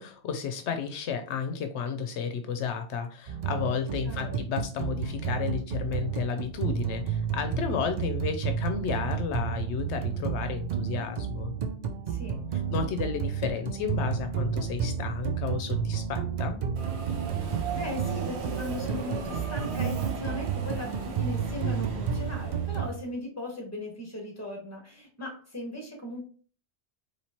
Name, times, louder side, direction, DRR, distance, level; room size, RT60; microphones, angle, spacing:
voice 1, 0.0-11.5 12.7-16.6, left 6 dB, 80° left, 7 dB, 0.9 m, -32 dB
sound 1, 3.3-22.9, right 7 dB, 50° right, 0.5 m, -31 dB
voice 2, 4.0-4.5 12.1-12.4 17.7-26.2, left 1 dB, 15° left, 0 dB, 1.4 m, -38 dB
Subway metro underground, 16.8-23.0, right 4 dB, 70° right, 1.0 m, -37 dB
4.2 x 3.2 x 3.0 m, 0.40 s
omnidirectional pair, 1.2 m